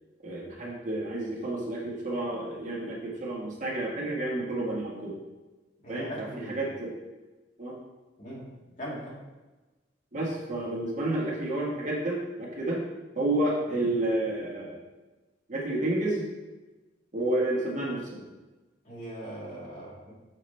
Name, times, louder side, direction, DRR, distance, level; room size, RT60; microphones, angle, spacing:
voice 1, 0.2-5.2 5.9-6.9 7.6-7.8 10.1-12.8 13.1-14.8 15.5-16.2 17.1-18.2, right 1 dB, 45° right, -4 dB, 1.5 m, -30 dB
voice 2, 5.8-6.7 8.2-9.2 18.8-20.1, equal, 45° left, -6 dB, 2.3 m, -40 dB
6.6 x 6.0 x 3.3 m, 1.2 s
head